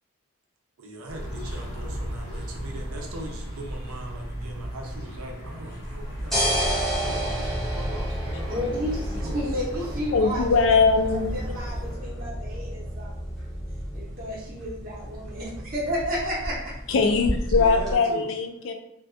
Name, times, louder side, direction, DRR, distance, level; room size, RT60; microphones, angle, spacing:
voice 1, 0.8-8.7 9.2-9.4 9.8-10.2 11.4-11.5 15.3-15.4 17.4-18.3, right 2 dB, 75° right, 1 dB, 0.5 m, -41 dB
Nature Day Ambiance, 1.1-11.9, equal, 85° left, 1.0 m, -36 dB
sound 1, 5.8-17.9, equal, ahead, 0.7 m, -31 dB
voice 2, 8.5-10.5 11.1-13.4 13.9-16.7, equal, 40° right, -6 dB, 0.7 m, -32 dB
voice 3, 10.1-11.3 16.9-18.7, left 4 dB, 60° left, 5 dB, 0.3 m, -21 dB
2.5 x 2.3 x 2.4 m, 0.79 s
head